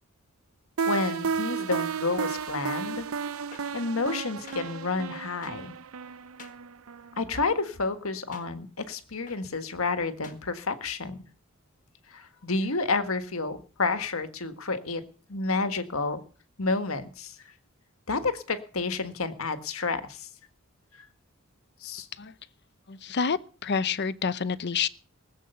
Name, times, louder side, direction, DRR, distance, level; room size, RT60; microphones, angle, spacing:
sound 1, 0.8-7.5, right 6 dB, 85° right, 0.7 m, -33 dB
voice 1, 0.9-3.1 3.7-5.7 7.2-11.2 12.1-15.0 15.3-16.2 16.6-17.3 18.1-20.3 20.9-21.1 21.8-22.1, left 3 dB, 85° left, 1.6 m, -30 dB
sound 2, 3.5-3.6 4.5-4.6 5.4-5.5 6.4-6.5 7.3-7.5 8.3-8.4 9.3-9.4 10.2-10.4, left 6 dB, 40° left, 1.7 m, -47 dB
voice 2, 22.9-24.9, left 6 dB, 55° left, 0.7 m, -28 dB
19.0 x 8.2 x 6.8 m
head